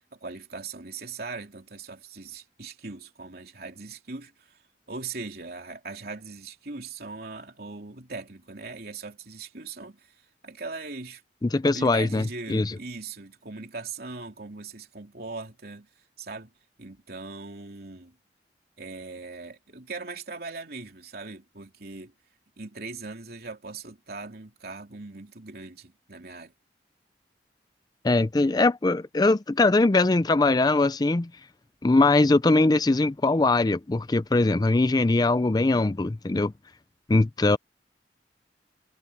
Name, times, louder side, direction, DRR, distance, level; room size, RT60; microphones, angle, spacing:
voice 1, 0.1-4.6 4.9-10.1 10.4-11.2 11.6-15.9 16.2-16.5 16.8-18.2 18.8-22.1 22.6-26.5, right 3 dB, 60° right, 3.2 m, -40 dB
voice 2, 11.4-12.2 12.5-12.8 28.0-31.3 31.8-36.5 37.1-37.6, left 2 dB, 20° left, 0.4 m, -21 dB
head